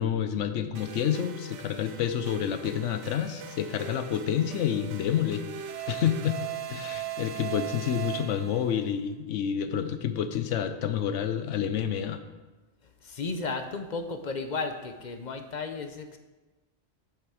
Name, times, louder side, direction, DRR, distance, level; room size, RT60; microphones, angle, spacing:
voice 1, 0.0-5.5 5.9-6.4 6.7-12.2, left 9 dB, 80° left, 10 dB, 1.0 m, -29 dB
sound 1, 0.8-8.8, right 10 dB, 80° right, 1.0 m, -39 dB
voice 2, 13.0-16.2, left 4 dB, 50° left, 7 dB, 0.6 m, -34 dB
7.9 x 6.8 x 4.9 m, 1.2 s
omnidirectional pair, 1.3 m